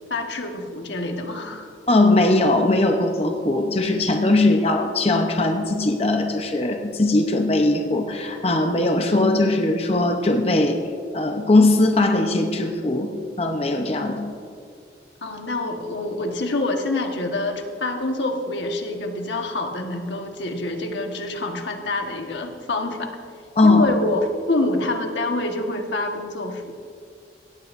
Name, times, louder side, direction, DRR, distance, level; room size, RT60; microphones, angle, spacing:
voice 1, 0.1-1.7 15.2-23.1 23.6-26.7, left 2 dB, 85° left, 3 dB, 1.3 m, -26 dB
voice 2, 1.9-10.8 11.1-13.1 13.4-14.3 23.6-23.9, left 2 dB, 35° left, 4 dB, 0.8 m, -19 dB
18.0 x 14.5 x 2.6 m, 2.2 s
head